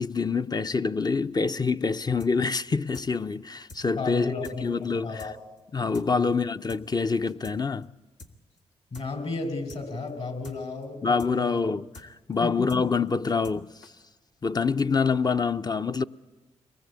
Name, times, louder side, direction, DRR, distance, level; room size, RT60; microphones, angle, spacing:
voice 1, 0.0-4.3 4.6-5.3 5.7-7.9 11.0-13.9 14.4-16.0, left 4 dB, 35° left, 0.7 m, -26 dB
sound 1, 2.2-2.3 2.6-2.7 2.9-3.1 3.3-3.4 3.7-3.8 4.1-4.2 4.4-4.6 4.8-4.9 5.2-5.3 5.6-5.7 5.9-6.1 6.3-6.4 6.7-6.8 7.1-7.6 7.8-7.9 8.2-8.3 8.6-8.7 8.9-9.1 9.3-9.4 9.7-9.8 10.1-10.2 10.4-10.6 10.8-10.9 11.2-11.3 11.6-11.7 11.9-12.1 12.3-12.4 12.7-12.8 13.1-13.6 13.8-13.9, left 2 dB, 80° left, 2.0 m, -46 dB
voice 2, 4.0-4.7 4.9-5.4 6.1-6.3 8.9-11.6 12.4-12.8, left 3 dB, 55° left, 4.9 m, -33 dB
23.5 x 19.5 x 8.3 m
supercardioid pair, 50°, 12 cm